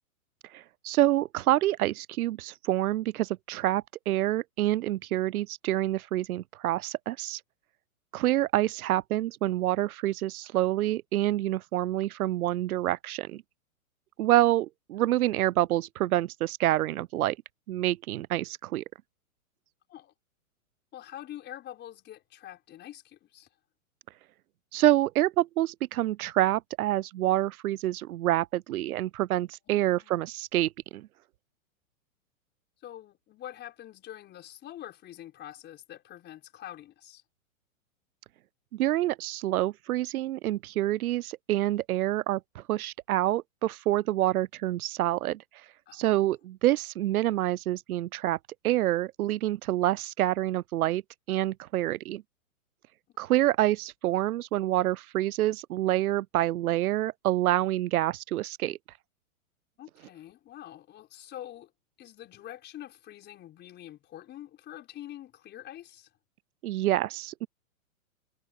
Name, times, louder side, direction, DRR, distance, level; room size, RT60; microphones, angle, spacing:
voice 1, 0.5-7.4 8.1-13.4 14.2-17.4 17.7-18.8 24.7-31.1 38.7-45.4 45.9-48.4 48.6-51.0 51.3-52.2 53.2-58.8 66.6-67.5, right 15 dB, 85° right, 0.5 m, -27 dB
voice 2, 20.9-23.5 29.7-30.2 32.8-37.2 45.9-46.3 59.8-61.7 62.0-66.1, left 12 dB, 25° left, 4.9 m, -45 dB
hypercardioid pair, 140°, 42 cm